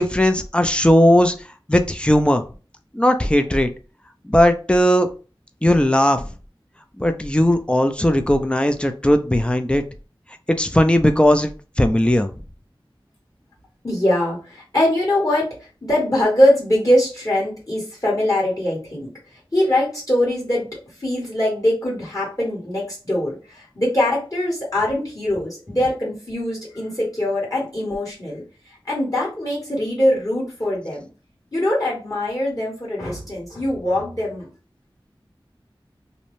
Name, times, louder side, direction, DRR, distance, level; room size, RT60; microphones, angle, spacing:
voice 1, 0.0-1.3 1.7-2.4 2.9-3.7 4.3-5.1 5.6-6.2 7.0-9.8 10.6-11.5 11.8-12.3, left 1 dB, 10° left, 7 dB, 0.4 m, -17 dB
voice 2, 13.8-20.7 21.0-31.1 31.5-34.5, left 1 dB, 40° left, -4 dB, 1.4 m, -22 dB
2.6 x 2.0 x 3.0 m, 0.35 s
wide cardioid pair, 55°, 9 cm